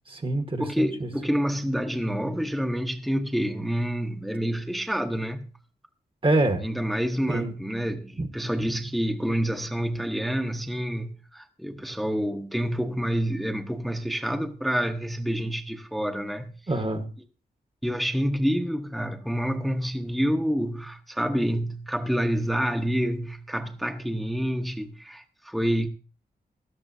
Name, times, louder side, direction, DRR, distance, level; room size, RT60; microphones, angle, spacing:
voice 1, 0.1-1.1 6.2-6.6 7.3-7.5 8.2-8.3 16.7-17.1, right 2 dB, 30° right, 1.3 m, -26 dB
voice 2, 0.6-5.5 6.6-16.6 17.8-25.9, equal, ahead, 0.9 m, -28 dB
16.5 x 12.0 x 2.7 m
wide cardioid pair, 85°, 17 cm